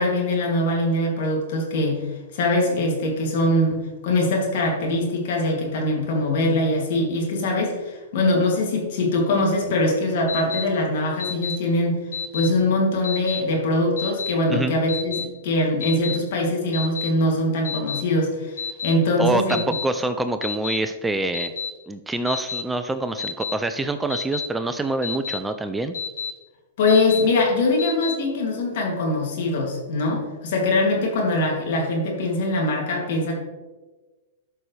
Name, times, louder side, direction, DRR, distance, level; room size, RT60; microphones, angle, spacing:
voice 1, 0.0-2.1 2.3-12.0 12.3-19.8 26.8-33.4, left 1 dB, 60° left, -1 dB, 2.7 m, -22 dB
Alarm, 10.3-10.6 11.2-11.6 12.1-12.5 13.0-13.4 14.0-14.3 14.9-15.2 15.8-16.2 16.7-17.1 17.6-18.0 18.6-18.9 19.5-19.8 20.4-20.8 21.3-21.7 22.3-22.6 23.2-23.5 24.1-24.5 25.0-25.4 25.9-26.3 26.9-27.2 27.8-28.1, left 6 dB, 75° left, 2.6 m, -29 dB
voice 2, 19.2-21.5 21.9-25.9, right 2 dB, 10° right, 9 dB, 0.5 m, -26 dB
12.5 x 5.5 x 3.4 m, 1.2 s
hypercardioid pair, 120°, 0 cm